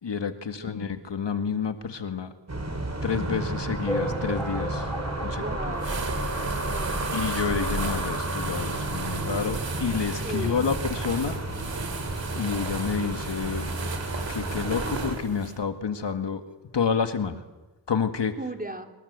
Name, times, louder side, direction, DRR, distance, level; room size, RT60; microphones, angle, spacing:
voice 1, 0.0-2.3 3.0-4.9 5.2-5.4 7.1-11.4 12.3-13.7 14.3-16.4 16.7-17.4 17.9-18.4, left 6 dB, 70° left, 8 dB, 1.9 m, -29 dB
sound 1, 2.5-15.2, right 1 dB, 35° right, 5.6 m, -31 dB
sound 2, 3.9-6.7 7.2-7.3 7.5-7.6 7.9-8.0 8.9-9.0 9.4-9.5, equal, 5° left, 3.3 m, -36 dB
voice 2, 5.2-6.0 6.6-7.0 10.2-10.6 18.4-18.9, right 2 dB, 20° right, 4 dB, 3.3 m, -36 dB
sound 3, 5.8-15.6, right 5 dB, 80° right, 3.3 m, -36 dB
25.5 x 23.0 x 8.1 m, 1.2 s
cardioid pair, 55°, 43 cm